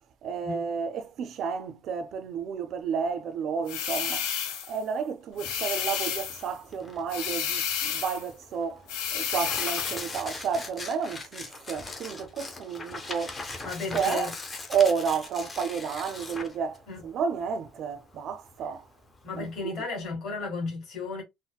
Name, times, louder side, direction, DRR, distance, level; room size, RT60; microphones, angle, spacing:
voice 1, 0.2-8.9 9.1-13.4 13.9-14.3 14.7-18.9 19.3-19.7, right 6 dB, 40° right, 0.4 m, -31 dB
sound 1, 3.7-4.8 5.4-6.5 7.1-8.3 8.9-10.1, left 8 dB, 75° left, 0.9 m, -31 dB
Tearing, 5.4-19.6, left 3 dB, 15° left, 0.5 m, -41 dB
voice 2, 13.6-14.3 16.9-17.0 19.2-21.2, left 4 dB, 40° left, 2.0 m, -34 dB
3.9 x 2.0 x 2.2 m
cardioid pair, 175°, 0 cm